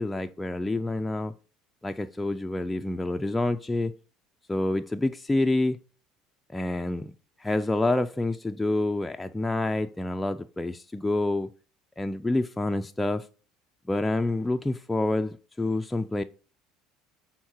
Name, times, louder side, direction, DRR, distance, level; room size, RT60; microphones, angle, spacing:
voice 1, 0.0-1.3 1.8-3.9 4.5-5.8 6.5-7.1 7.4-11.5 12.0-13.3 13.9-16.2, left 2 dB, 10° left, 0.3 m, -27 dB
6.3 x 3.7 x 4.4 m
supercardioid pair, 85°, 0 cm